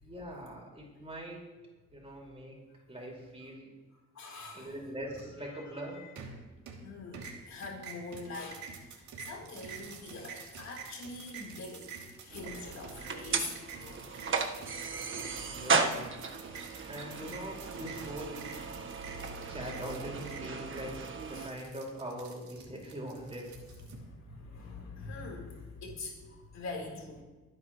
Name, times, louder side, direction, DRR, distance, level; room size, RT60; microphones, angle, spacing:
voice 1, 0.0-1.4 1.9-2.5 2.9-3.7 4.5-6.1 15.4-16.1 16.9-18.5 19.5-21.0 21.3-23.5 24.4-24.5, right 1 dB, 20° right, -2 dB, 5.1 m, -42 dB
voice 2, 4.1-4.7 5.4-6.1 6.8-11.9 12.2-14.1 19.3-19.4 21.3-21.5 23.8-27.2, left 3 dB, 60° left, -1 dB, 3.8 m, -44 dB
sound 1, 6.2-6.9 7.1-23.9, right 5 dB, 70° right, 2.8 m, -48 dB
sound 2, 12.3-21.5, right 4 dB, 40° right, 1.4 m, -35 dB
25.0 x 10.0 x 3.1 m, 1.2 s
cardioid pair, 90°, 30 cm